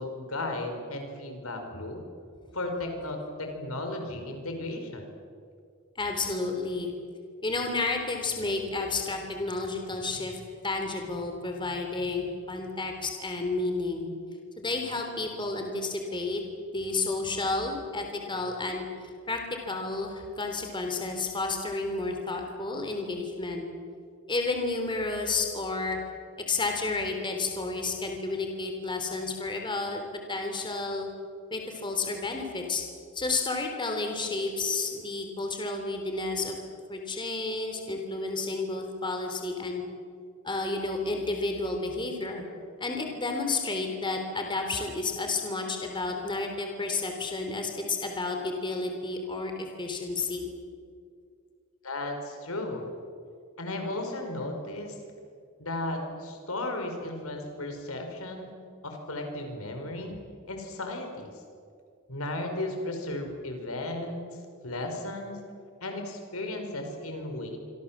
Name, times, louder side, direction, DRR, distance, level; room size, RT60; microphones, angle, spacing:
voice 1, 0.0-2.0 2.5-5.1 51.8-52.9 53.6-54.9 55.6-58.5 58.8-60.2 60.5-61.3 62.1-64.3 64.6-65.4 65.8-67.6, left 2 dB, 85° left, 4 dB, 5.2 m, -35 dB
voice 2, 6.0-6.9 7.4-14.0 14.6-16.4 16.7-19.4 19.7-23.6 24.3-26.0 26.5-30.0 30.3-31.1 31.5-32.8 33.1-36.6 36.9-39.8 40.4-42.4 42.8-50.5, left 3 dB, 20° left, 3 dB, 3.6 m, -31 dB
26.5 x 25.5 x 7.5 m, 2.3 s
head